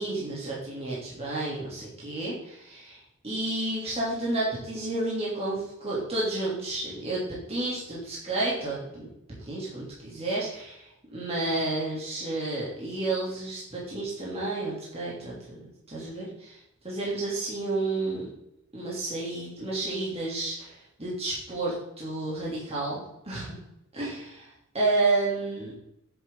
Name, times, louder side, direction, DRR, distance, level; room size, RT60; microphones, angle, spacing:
voice 1, 0.0-3.0 3.2-9.1 9.5-10.8 11.1-15.4 15.9-16.6 16.8-18.3 18.7-20.7 21.0-23.5 23.9-24.5 24.7-25.7, right 2 dB, 30° right, -6 dB, 3.0 m, -31 dB
10.0 x 7.4 x 3.8 m, 0.83 s
head